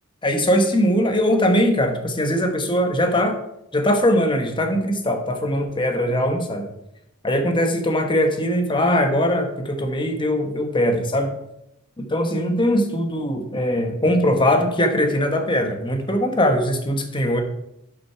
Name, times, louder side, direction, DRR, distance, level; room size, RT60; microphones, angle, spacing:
voice 1, 0.2-3.4 3.7-6.7 7.2-11.3 12.0-17.4, equal, 20° left, 5 dB, 1.2 m, -21 dB
11.0 x 6.2 x 4.7 m, 0.82 s
head